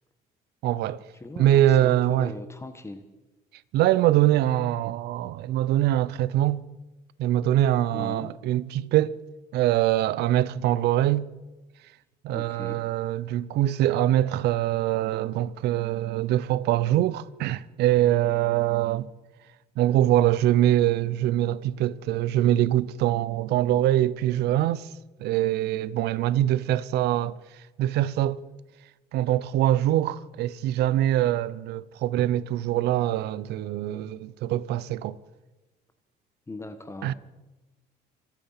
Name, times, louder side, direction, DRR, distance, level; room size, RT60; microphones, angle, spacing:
voice 1, 0.6-1.0 1.4-2.3 3.7-6.6 7.2-9.2 9.5-11.3 12.2-19.1 19.8-24.9 25.2-27.4 27.8-28.4 29.1-35.2 37.0-37.1, right 13 dB, 80° right, 0.7 m, -23 dB
voice 2, 1.2-3.0 7.9-8.3 12.3-12.8 36.5-37.1, left 2 dB, 15° left, 1.3 m, -39 dB
26.0 x 9.1 x 5.7 m
cardioid pair, 110°, 17 cm